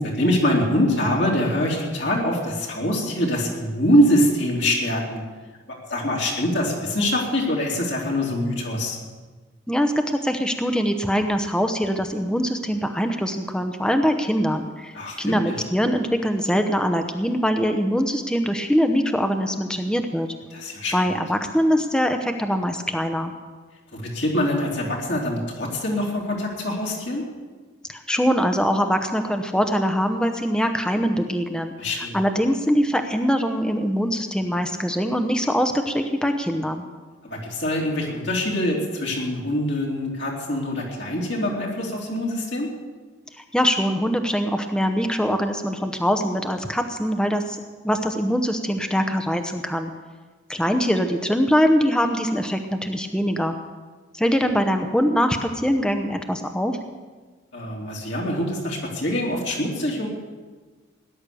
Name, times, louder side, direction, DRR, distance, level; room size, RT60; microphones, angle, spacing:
voice 1, 0.0-5.2 5.7-9.0 14.9-15.5 20.5-20.9 23.9-27.2 31.8-32.2 37.3-42.7 57.5-60.1, left 1 dB, 65° left, -3 dB, 3.1 m, -24 dB
voice 2, 9.7-20.3 20.9-23.3 27.9-36.8 43.4-47.6 47.8-49.9 50.5-53.5 54.1-56.8, equal, 5° left, 6 dB, 0.8 m, -23 dB
18.5 x 10.5 x 6.9 m, 1.4 s
head